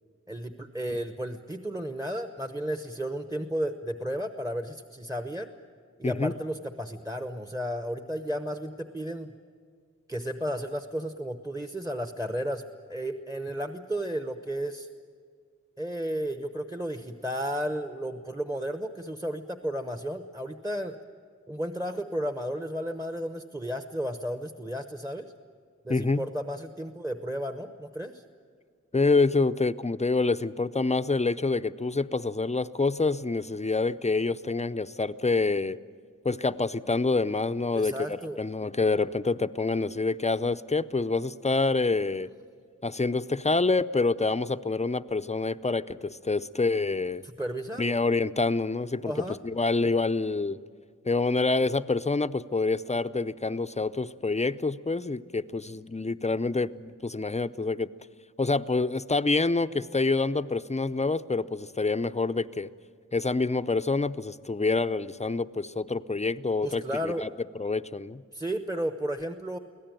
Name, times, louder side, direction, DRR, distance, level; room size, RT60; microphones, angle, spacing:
voice 1, 0.3-5.5 6.0-9.3 10.1-14.9 15.8-21.0 21.5-25.3 25.8-28.2 37.7-38.4 47.2-48.0 49.0-49.4 66.6-67.3 68.3-69.6, equal, 10° right, 7 dB, 0.9 m, -33 dB
voice 2, 25.9-26.2 28.9-35.8 36.2-42.3 42.8-47.2 47.8-50.6 51.0-57.9 58.4-62.7 63.1-67.3 67.5-68.2, left 3 dB, 20° left, 13 dB, 0.6 m, -27 dB
24.5 x 17.0 x 9.1 m, 2.1 s
wide cardioid pair, 50°, 31 cm